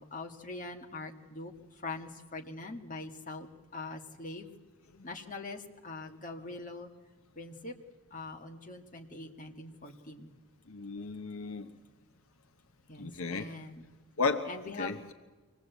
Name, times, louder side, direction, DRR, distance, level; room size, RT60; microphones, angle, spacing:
voice 1, 0.0-3.5 3.7-4.5 5.0-6.9 7.4-7.7 8.1-10.3 12.9-13.9 14.4-14.9, left 3 dB, 35° left, 3 dB, 1.9 m, -43 dB
voice 2, 10.7-11.7 13.0-13.5 14.2-14.5 14.8-15.1, left 4 dB, 70° left, 7 dB, 0.9 m, -33 dB
24.5 x 19.0 x 8.2 m, 1.3 s
head